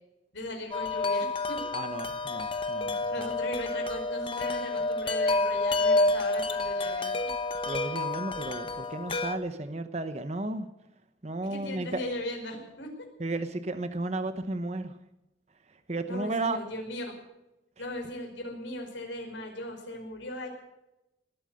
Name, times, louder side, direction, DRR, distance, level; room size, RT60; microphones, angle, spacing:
voice 1, 0.3-1.6 3.1-7.3 11.5-13.1 16.1-17.1 17.8-20.5, left 1 dB, 85° left, 2 dB, 5.1 m, -38 dB
Wind chime, 0.7-9.4, left 2 dB, 30° left, 1.1 m, -29 dB
voice 2, 1.7-3.3 7.7-10.7 11.2-12.0 13.2-15.0 15.9-16.6, right 2 dB, 35° right, 10 dB, 0.9 m, -33 dB
19.5 x 9.0 x 7.8 m, 0.91 s
head